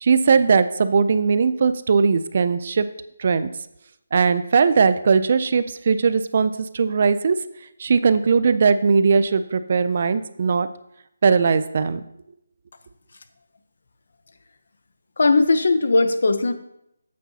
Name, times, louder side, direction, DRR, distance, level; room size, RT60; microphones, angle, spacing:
voice 1, 0.0-2.9 3.2-3.5 4.1-7.4 7.8-10.7 11.2-12.0, right 5 dB, 35° right, 13 dB, 0.3 m, -19 dB
voice 2, 15.2-16.5, left 3 dB, 55° left, 10 dB, 0.8 m, -18 dB
9.6 x 8.4 x 2.8 m, 0.79 s
hypercardioid pair, 175°, 0 cm